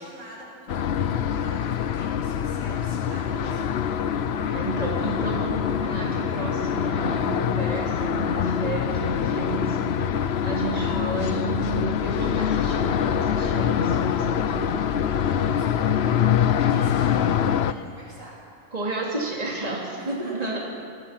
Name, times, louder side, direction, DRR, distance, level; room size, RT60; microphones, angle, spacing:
voice 1, 0.0-4.0 15.2-18.7 19.9-20.6, right 1 dB, 80° right, -5 dB, 7.7 m, -46 dB
sound 1, 0.7-17.7, left 8 dB, 60° left, 0.9 m, -24 dB
sound 2, 3.3-3.7 4.2-4.7 5.1-5.6 6.1-6.6 7.0-7.5 7.9-8.4 8.9-9.4 9.8-10.3 10.8-11.3 11.7-12.2 12.6-13.1 13.6-14.1 14.5-15.0 15.5-15.9, right 3 dB, 30° left, 2.4 m, -40 dB
voice 2, 4.4-14.6 18.7-20.6, right 2 dB, 30° right, -3 dB, 3.0 m, -32 dB
27.0 x 19.0 x 5.9 m, 2.4 s
omnidirectional pair, 1.4 m